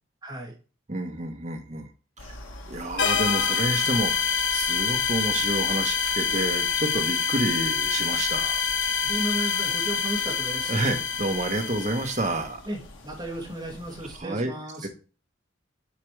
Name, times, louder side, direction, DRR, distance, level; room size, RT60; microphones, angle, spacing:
voice 1, 0.2-0.5 9.0-10.8 12.7-14.9, right 1 dB, 20° right, -4 dB, 2.5 m, -34 dB
voice 2, 0.9-1.9 2.2-2.4 2.7-4.2 4.5-8.6 10.7-12.6 14.1-14.5 14.8-14.9, right 1 dB, 35° right, 4 dB, 1.1 m, -29 dB
sound 1, 2.2-14.2, left 1 dB, 85° left, 1.3 m, -46 dB
sound 2, 3.0-12.4, left 6 dB, 65° left, 0.7 m, -26 dB
8.3 x 5.1 x 3.3 m, 0.36 s
head